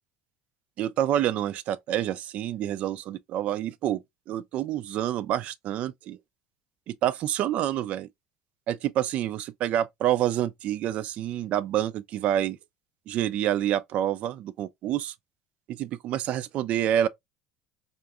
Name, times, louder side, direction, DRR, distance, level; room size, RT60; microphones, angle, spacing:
voice 1, 0.8-4.0 4.3-6.2 6.9-8.1 8.7-12.6 13.1-15.1 15.7-17.1, right 11 dB, 55° right, 0.3 m, -27 dB
3.6 x 2.5 x 2.2 m
hypercardioid pair, 80°, 3 cm